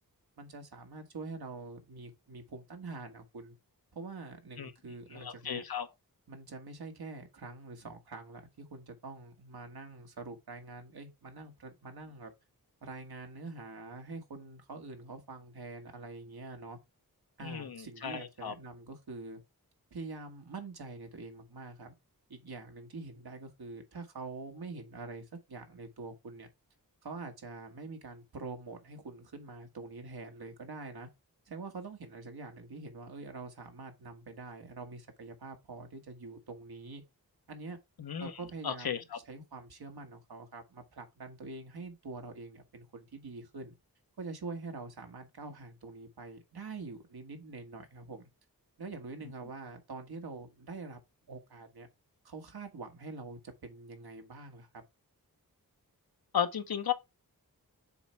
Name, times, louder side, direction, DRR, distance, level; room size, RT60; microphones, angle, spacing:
voice 1, 0.4-3.5 3.9-5.6 6.3-12.3 12.8-16.8 17.4-19.4 19.9-21.9 22.3-26.5 27.0-31.1 31.5-37.0 37.5-37.8 38.2-39.0 39.3-43.7 44.2-48.3 48.8-51.0 51.3-51.9 52.2-54.8, right 3 dB, 90° right, 1.6 m, -45 dB
voice 2, 5.1-5.9 17.4-18.5 38.0-38.3 38.6-39.2 56.3-56.9, left 8 dB, 75° left, 0.9 m, -34 dB
7.0 x 4.2 x 3.4 m
wide cardioid pair, 70°, 36 cm